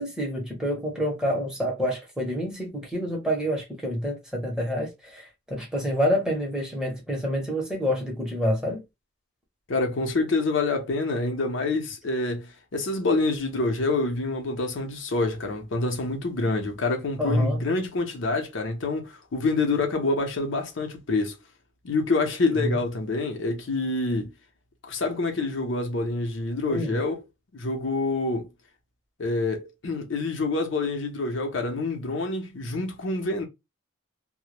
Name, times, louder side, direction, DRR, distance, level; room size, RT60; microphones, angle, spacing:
voice 1, 0.0-8.8 17.2-17.6 22.6-22.7 26.7-26.9, equal, 5° right, 0.7 m, -27 dB
voice 2, 9.7-21.4 21.8-24.3 24.8-27.2 27.5-28.5 29.2-33.4, left 3 dB, 70° left, 0.6 m, -27 dB
2.1 x 2.0 x 2.9 m
head